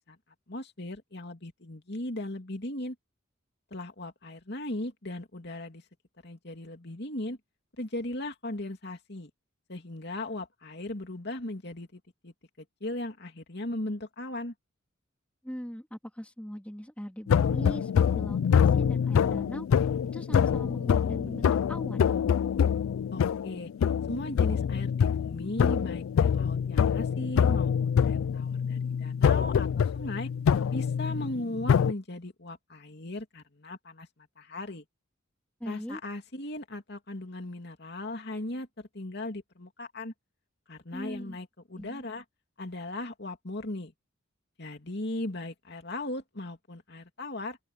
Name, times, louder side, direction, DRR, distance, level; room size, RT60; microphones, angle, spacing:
voice 1, 0.5-2.9 3.7-5.8 6.2-7.4 7.8-9.3 9.7-14.5 23.1-23.7 24.1-30.3 30.7-34.8 35.6-40.1 40.7-42.2 42.6-43.9 44.6-47.6, left 1 dB, 55° left, 2.9 m, -38 dB
voice 2, 15.4-19.9 20.1-22.1 35.6-36.0 40.9-41.4 41.8-42.0, equal, 5° left, 3.1 m, -40 dB
sound 1, 17.3-31.9, left 7 dB, 85° left, 0.3 m, -25 dB
open air
head